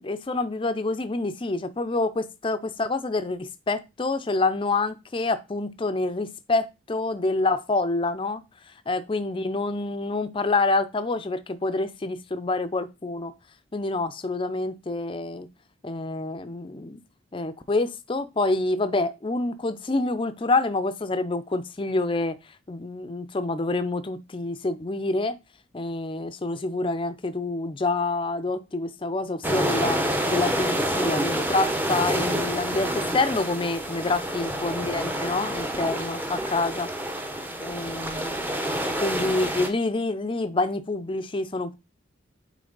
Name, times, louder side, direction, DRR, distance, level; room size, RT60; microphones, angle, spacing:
voice 1, 0.0-8.4 8.9-13.3 13.7-15.5 15.8-17.0 17.3-22.4 22.7-25.4 25.7-30.0 30.3-36.9 37.6-41.7, left 2 dB, 25° left, 0.4 m, -27 dB
sound 1, 29.4-39.7, right 1 dB, 10° right, 0.7 m, -28 dB
8.6 x 3.3 x 3.9 m
head